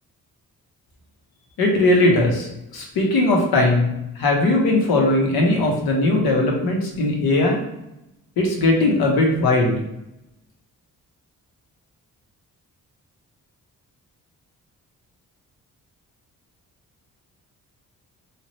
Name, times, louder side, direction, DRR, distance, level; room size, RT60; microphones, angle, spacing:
voice 1, 1.6-7.6 8.4-9.8, left 2 dB, 80° left, 0 dB, 0.9 m, -19 dB
2.9 x 2.4 x 3.0 m, 0.88 s
cardioid pair, 65°, 37 cm